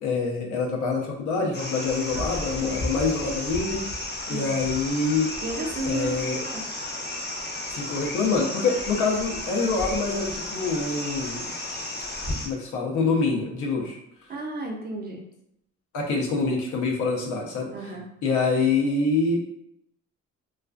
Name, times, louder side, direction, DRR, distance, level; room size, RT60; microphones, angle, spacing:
voice 1, 0.0-3.8 4.3-5.3 5.8-6.4 7.7-11.5 12.4-14.0 15.9-17.7 18.2-19.5, left 4 dB, 80° left, -1 dB, 0.7 m, -25 dB
sound 1, 1.5-12.5, left 1 dB, 35° left, 0.7 m, -33 dB
voice 2, 5.4-6.6 14.3-15.2 17.7-18.0, right 2 dB, 30° right, 0 dB, 0.6 m, -33 dB
2.4 x 2.2 x 2.3 m, 0.78 s
cardioid pair, 90°, 30 cm